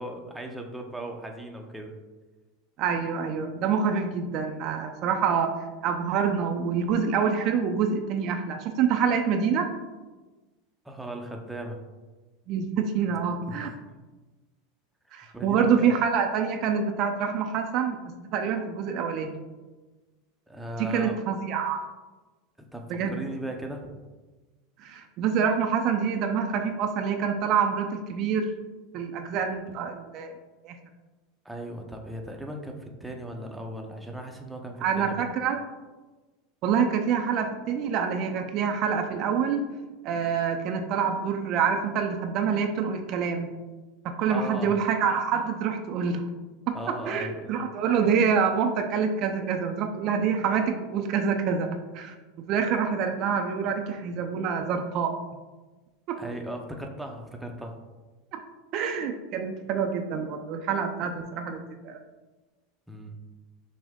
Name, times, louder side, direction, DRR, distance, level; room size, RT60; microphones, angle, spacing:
voice 1, 0.0-1.9 10.8-11.8 13.4-13.7 15.1-15.9 20.5-21.2 22.7-23.9 31.4-35.3 44.3-44.7 46.7-47.6 56.2-57.8 62.9-63.2, right 1 dB, 5° right, 2 dB, 0.6 m, -37 dB
voice 2, 2.8-5.5 5.8-9.7 12.5-13.7 15.1-19.4 20.8-21.8 22.9-23.1 24.8-28.5 28.9-30.3 30.6-30.8 34.8-35.6 36.6-39.7 40.0-43.5 44.0-46.3 46.7-52.1 52.5-55.1 56.1-56.2 58.3-58.4 58.7-62.0, right 6 dB, 50° right, 5 dB, 0.4 m, -26 dB
6.0 x 2.1 x 3.6 m, 1.2 s
supercardioid pair, 110°, 0 cm